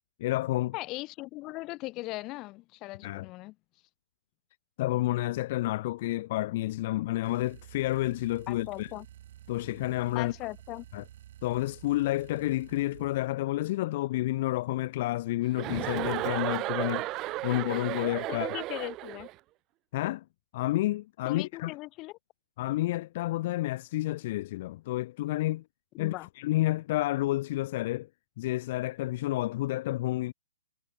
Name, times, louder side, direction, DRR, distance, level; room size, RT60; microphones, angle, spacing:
voice 1, 0.2-0.7 3.0-3.3 4.8-8.9 9.5-10.3 10.9-11.0 11.4-18.5 19.9-20.2 20.5-21.7 22.6-25.6 26.0-28.1 28.4-30.3, left 16 dB, 45° left, 0.3 m, -30 dB
voice 2, 0.7-3.5 8.5-9.1 10.1-10.9 18.3-19.3 21.3-22.2 26.0-26.3, left 20 dB, 25° left, 0.8 m, -38 dB
sound 1, 7.2-13.3, right 12 dB, 50° right, 2.2 m, -51 dB
Chuckle chortle, 15.6-19.3, right 18 dB, 25° right, 0.4 m, -33 dB
hypercardioid pair, 140°, 0 cm